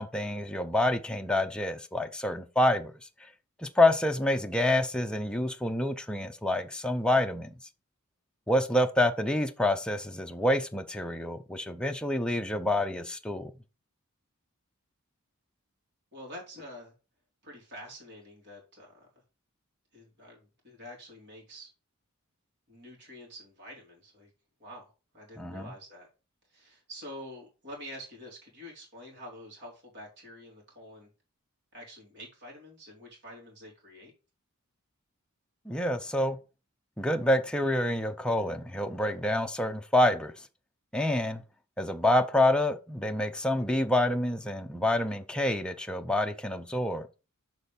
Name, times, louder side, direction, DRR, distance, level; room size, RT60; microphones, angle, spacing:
voice 1, 0.0-2.9 3.6-7.5 8.5-13.5 25.4-25.7 35.7-36.4 37.0-40.3 40.9-41.4 41.8-47.1, left 1 dB, 5° left, 0.6 m, -27 dB
voice 2, 16.1-16.9 17.4-19.1 19.9-21.7 22.7-24.3 24.6-26.1 26.5-31.1 31.7-34.1, equal, 50° right, 3.1 m, -47 dB
6.8 x 4.1 x 5.2 m
head